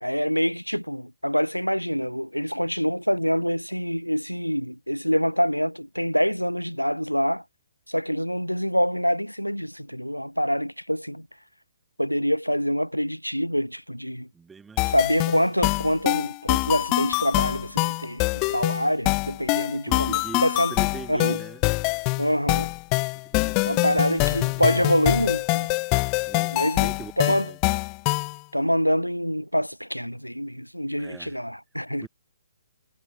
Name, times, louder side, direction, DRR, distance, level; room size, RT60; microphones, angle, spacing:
voice 1, 0.0-7.4 7.9-11.3 12.0-14.3 14.9-20.7 21.1-21.4 22.2-22.7 23.7-25.7 26.5-26.9 27.2-27.5 28.5-32.1, equal, 90° left, 1.0 m, -25 dB
voice 2, 14.3-15.0 19.7-21.6 23.1-24.6 26.3-27.6 31.0-31.4 32.0-32.1, right 5 dB, 10° right, 4.3 m, -42 dB
sound 1, 14.8-28.4, left 33 dB, 25° left, 0.3 m, -25 dB
figure-of-eight pair, 130°, 0 cm